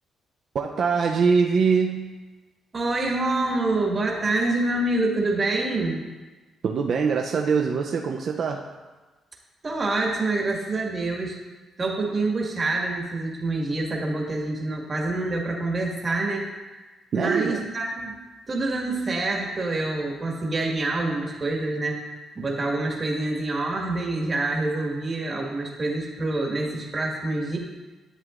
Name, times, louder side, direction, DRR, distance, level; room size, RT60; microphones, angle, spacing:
voice 1, 0.5-2.2 6.6-8.7 17.1-17.6, right 5 dB, 55° right, 2 dB, 0.5 m, -23 dB
voice 2, 2.7-6.0 9.6-11.4 11.8-16.5 17.1-18.1 18.5-27.6, right 2 dB, 35° right, -1 dB, 1.7 m, -26 dB
11.0 x 7.5 x 2.5 m, 1.2 s
cardioid pair, 90°, 0 cm